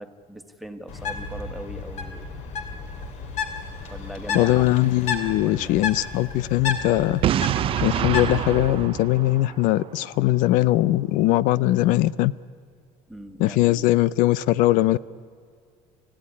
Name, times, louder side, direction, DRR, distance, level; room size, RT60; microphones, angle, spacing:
voice 1, 0.0-2.3 3.9-4.7 5.4-5.9 13.1-13.9, right 1 dB, ahead, 1.5 m, -40 dB
Bird, 0.9-8.7, left 5 dB, 55° left, 2.9 m, -32 dB
voice 2, 4.3-7.2 7.8-12.3 13.4-15.0, left 16 dB, 75° left, 0.5 m, -20 dB
Boom, 7.2-10.1, right 11 dB, 40° right, 0.6 m, -26 dB
27.5 x 15.5 x 9.8 m
cardioid pair, 145°, 14 cm